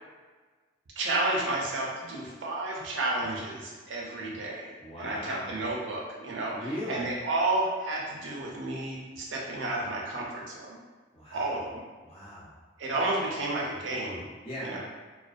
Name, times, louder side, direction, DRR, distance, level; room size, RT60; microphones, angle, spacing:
voice 1, 1.0-4.7 5.0-6.6 6.9-10.8 11.3-11.8 12.8-14.3 14.7-14.8, right 2 dB, 75° right, -3 dB, 0.5 m, -31 dB
voice 2, 4.8-5.5 6.5-7.1 11.1-11.6 12.0-12.5 14.4-14.8, equal, 30° left, -8 dB, 0.7 m, -39 dB
2.4 x 2.2 x 2.4 m, 1.4 s
head